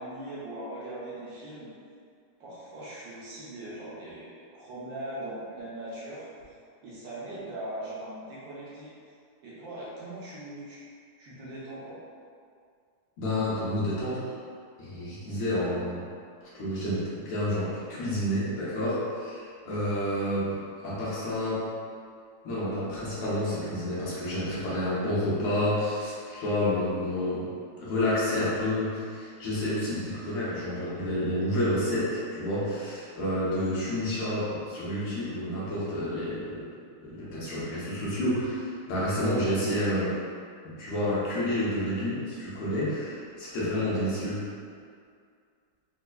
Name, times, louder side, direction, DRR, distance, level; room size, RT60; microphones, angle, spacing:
voice 1, 0.0-1.7 2.4-6.3 6.8-8.9 9.4-10.8 11.2-12.0, right 1 dB, 70° right, -8 dB, 1.3 m, -40 dB
voice 2, 13.2-14.3 14.8-16.1 16.4-20.6 20.8-21.7 22.4-36.7 37.0-40.2 40.6-44.4, left 1 dB, 75° left, -9 dB, 1.7 m, -29 dB
4.4 x 2.4 x 2.2 m, 2.2 s
omnidirectional pair, 2.4 m